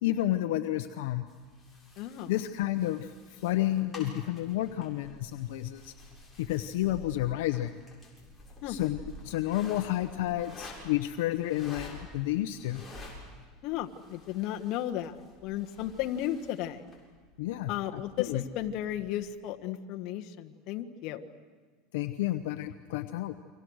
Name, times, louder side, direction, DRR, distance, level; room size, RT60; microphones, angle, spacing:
voice 1, 0.0-1.2 2.3-5.9 6.4-7.8 8.7-9.0 9.2-12.8 17.4-18.4 21.9-23.3, left 14 dB, 80° left, 8 dB, 1.0 m, -31 dB
sound 1, 1.3-19.2, left 1 dB, 5° left, 7.5 m, -50 dB
voice 2, 2.0-2.3 8.6-8.8 13.6-16.9 17.7-21.3, left 12 dB, 55° left, 4 dB, 1.6 m, -34 dB
29.5 x 24.5 x 6.5 m, 1.5 s
supercardioid pair, 125°, 0 cm